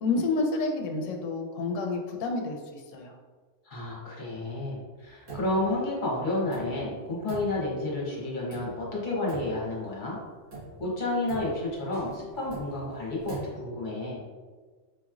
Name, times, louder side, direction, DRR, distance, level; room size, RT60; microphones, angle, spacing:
voice 1, 0.0-3.1, left 3 dB, 85° left, 2 dB, 0.9 m, -29 dB
voice 2, 3.6-10.2 10.8-13.4 13.6-14.2, left 2 dB, 45° left, -5 dB, 1.0 m, -31 dB
sound 1, 5.0-5.8 6.0-6.1 6.5-8.0 8.5-9.0 9.3-10.0 10.5-13.4, right 3 dB, 80° right, 1.7 m, -43 dB
4.7 x 3.0 x 2.4 m, 1.4 s
omnidirectional pair, 1.3 m